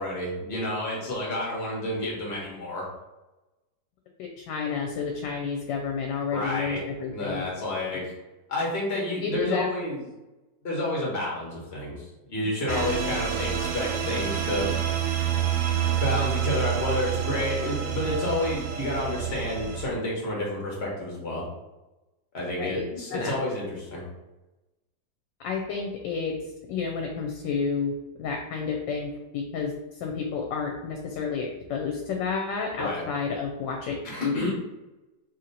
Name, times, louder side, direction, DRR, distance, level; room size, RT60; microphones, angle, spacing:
voice 1, 0.0-2.9 6.3-6.8 7.1-8.1 8.5-10.0 10.6-14.7 16.0-21.4 22.3-24.0 32.8-33.0 34.0-34.5, left 1 dB, 40° left, -3 dB, 1.2 m, -30 dB
voice 2, 4.2-7.4 9.2-9.7 12.7-12.8 22.6-23.3 25.4-26.3 26.7-27.9 28.2-34.5, left 5 dB, 85° left, 1 dB, 1.3 m, -30 dB
sound 1, 12.7-19.8, right 9 dB, 85° right, 0.7 m, -28 dB
3.0 x 2.9 x 3.8 m, 1.0 s
omnidirectional pair, 1.9 m